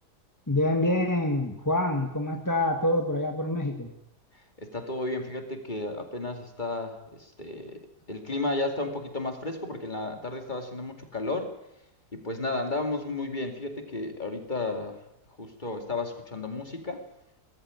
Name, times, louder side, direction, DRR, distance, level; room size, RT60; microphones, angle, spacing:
voice 1, 0.5-3.9, left 1 dB, 10° left, 3 dB, 1.6 m, -26 dB
voice 2, 4.6-7.8 8.1-11.5 12.1-15.0 15.4-17.0, left 2 dB, 30° left, 5 dB, 2.6 m, -33 dB
18.5 x 15.0 x 9.7 m, 0.83 s
omnidirectional pair, 1.7 m